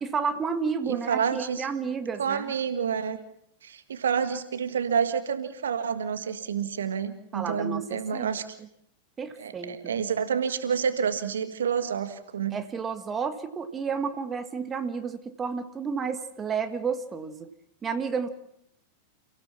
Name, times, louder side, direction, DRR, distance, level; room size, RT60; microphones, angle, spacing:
voice 1, 0.0-2.5 7.3-8.3 9.2-9.9 12.5-17.5 17.8-18.3, right 5 dB, 20° right, 8 dB, 1.7 m, -31 dB
voice 2, 0.9-1.7 2.2-3.2 3.6-8.4 9.4-12.6, right 7 dB, 65° right, 10 dB, 1.7 m, -28 dB
30.0 x 16.5 x 5.8 m, 0.73 s
figure-of-eight pair, 90°, 0 cm